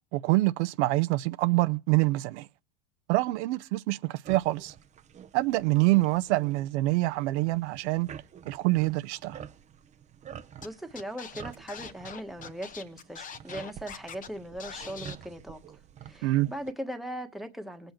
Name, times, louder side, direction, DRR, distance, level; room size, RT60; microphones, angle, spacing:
voice 1, 0.1-2.5 3.1-4.7 5.3-8.1 8.5-9.4 16.2-16.5, right 20 dB, 70° right, 0.7 m, -26 dB
sound 1, 4.2-16.7, right 8 dB, 20° right, 0.6 m, -48 dB
Scratching (performance technique), 10.6-10.7 10.9-14.3 14.6-15.1, left 7 dB, 20° left, 0.8 m, -43 dB
voice 2, 10.6-15.8 16.0-17.9, equal, ahead, 1.2 m, -39 dB
19.5 x 8.0 x 4.4 m
supercardioid pair, 140°, 36 cm